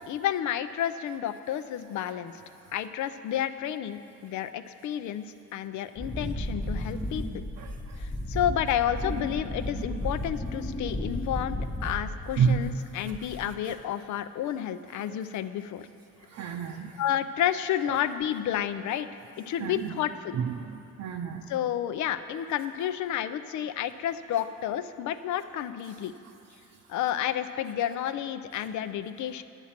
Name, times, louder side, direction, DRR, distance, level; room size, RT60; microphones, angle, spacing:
voice 1, 0.1-2.3 2.7-7.2 8.0-15.9 16.5-16.6 17.0-19.1 19.4-20.4 21.5-26.1 26.9-29.4, left 10 dB, 75° left, 12 dB, 0.5 m, -31 dB
Wind, 6.0-12.8 13.1-13.6, left 1 dB, 20° left, 1.0 m, -34 dB
voice 2, 16.3-16.9 19.6-19.9 20.3-21.4, right 7 dB, 65° right, 2 dB, 0.6 m, -29 dB
9.9 x 7.3 x 5.8 m, 2.7 s
cardioid pair, 90°, 30 cm